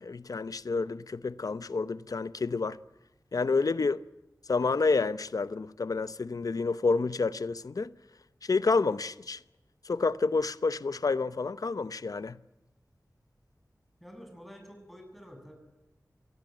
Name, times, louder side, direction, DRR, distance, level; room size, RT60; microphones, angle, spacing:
voice 1, 0.0-2.8 3.3-4.0 4.5-7.9 8.4-9.4 9.8-12.4, left 4 dB, 70° left, 0.8 m, -29 dB
voice 2, 14.0-15.5, equal, ahead, 7.7 m, -49 dB
25.0 x 18.0 x 8.9 m
wide cardioid pair, 55°, 6 cm